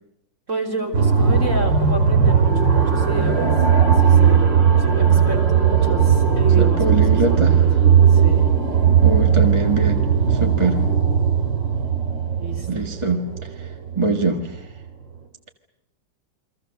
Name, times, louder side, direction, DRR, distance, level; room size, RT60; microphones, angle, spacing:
voice 1, 0.5-4.5 4.8-7.6 8.1-8.6 12.4-12.7, right 2 dB, 35° right, 1 dB, 3.9 m, -30 dB
sound 1, 0.9-14.6, right 7 dB, 65° right, 3.8 m, -17 dB
voice 2, 6.6-7.6 9.0-10.0 10.3-10.8 12.7-13.2 13.9-14.5, right 3 dB, 15° right, 3 dB, 1.5 m, -22 dB
29.0 x 24.0 x 6.6 m, 0.80 s
omnidirectional pair, 2.2 m